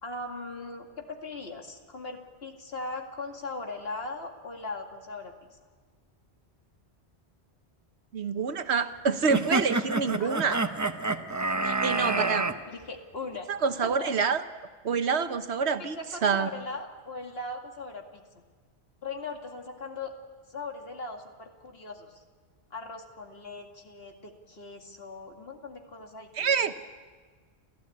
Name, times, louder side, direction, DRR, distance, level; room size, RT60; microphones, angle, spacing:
voice 1, 0.0-5.3 10.2-10.6 11.6-12.3 12.6-13.5 13.8-14.1 15.8-18.4 19.0-20.1 20.5-22.2 22.7-26.6, left 3 dB, 65° left, 3 dB, 2.4 m, -39 dB
voice 2, 8.1-10.6 11.8-12.4 13.5-14.4 14.8-16.5 26.3-26.7, right 5 dB, 75° right, 10 dB, 1.3 m, -27 dB
sound 1, 9.3-12.5, right 2 dB, 15° right, 0.8 m, -28 dB
30.0 x 14.0 x 8.5 m, 1.5 s
omnidirectional pair, 1.1 m